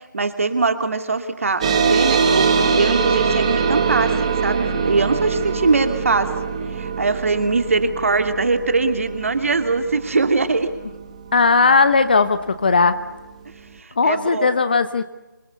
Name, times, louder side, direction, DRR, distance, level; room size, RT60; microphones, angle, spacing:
voice 1, 0.1-6.3 6.7-10.7 13.8-14.6, right 3 dB, 45° right, 9 dB, 2.4 m, -21 dB
sound 1, 1.6-12.5, right 5 dB, 20° right, 1.6 m, -23 dB
voice 2, 11.3-13.0 14.0-15.0, left 4 dB, 30° left, 12 dB, 0.9 m, -17 dB
27.0 x 23.5 x 8.2 m, 1.0 s
figure-of-eight pair, 170°, 10 cm